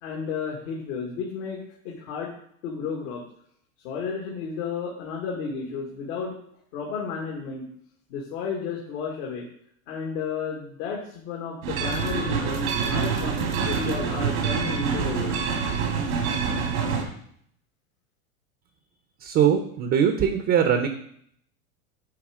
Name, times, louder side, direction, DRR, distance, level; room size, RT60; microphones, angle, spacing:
voice 1, 0.0-2.4 2.6-3.2 3.8-6.4 6.7-7.7 8.1-9.4 9.9-15.6, left 5 dB, 65° left, -2 dB, 1.8 m, -32 dB
sound 1, 11.6-17.0, right 6 dB, 80° right, 1.9 m, -26 dB
voice 2, 19.2-20.9, right 8 dB, 30° right, 7 dB, 0.8 m, -21 dB
9.5 x 3.4 x 4.9 m, 0.66 s
hypercardioid pair, 115°, 41 cm